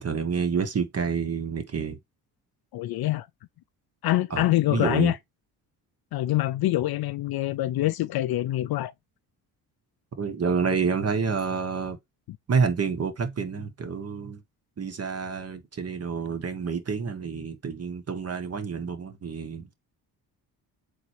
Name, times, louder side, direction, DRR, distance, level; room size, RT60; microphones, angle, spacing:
voice 1, 0.0-2.0 4.3-4.4 4.7-5.1 10.2-12.0 12.5-14.4 14.8-19.7, right 5 dB, 35° right, 1.1 m, -28 dB
voice 2, 2.7-3.3 4.0-5.2 6.1-8.9, left 15 dB, 55° left, 0.5 m, -25 dB
3.8 x 3.1 x 3.2 m
supercardioid pair, 55°, 45 cm